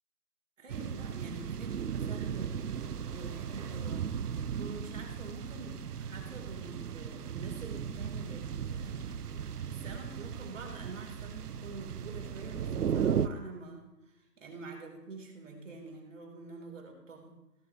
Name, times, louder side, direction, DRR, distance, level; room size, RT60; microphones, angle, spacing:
voice 1, 0.6-2.7 3.0-4.1 4.5-9.2 9.6-17.4, right 3 dB, 50° right, 2 dB, 3.1 m, -47 dB
sound 1, 0.7-13.3, right 8 dB, 70° right, 0.7 m, -36 dB
17.0 x 8.8 x 2.8 m, 0.92 s
figure-of-eight pair, 155°, 48 cm